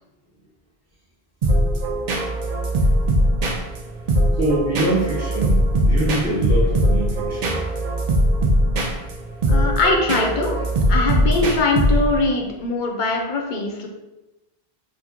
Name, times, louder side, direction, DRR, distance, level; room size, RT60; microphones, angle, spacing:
sound 1, 1.4-12.3, equal, 50° right, 0.5 m, -20 dB
voice 1, 4.4-7.6, right 1 dB, 15° right, -7 dB, 0.9 m, -24 dB
voice 2, 9.5-10.5 10.9-13.9, left 3 dB, 55° left, 1 dB, 0.7 m, -21 dB
4.4 x 2.1 x 2.8 m, 1.0 s
omnidirectional pair, 1.1 m